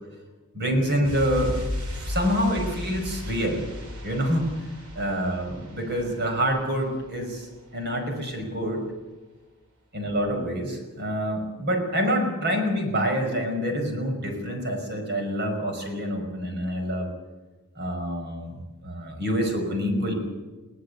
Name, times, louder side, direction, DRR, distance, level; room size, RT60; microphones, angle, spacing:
voice 1, 0.5-1.5 2.0-3.6 4.0-4.6 5.0-7.5 7.7-8.8 9.9-17.1 17.8-20.1, equal, 50° right, 4 dB, 5.4 m, -27 dB
sound 1, 1.0-7.6 7.8-7.9, left 1 dB, 70° right, 5.3 m, -35 dB
21.5 x 18.0 x 8.3 m, 1.2 s
head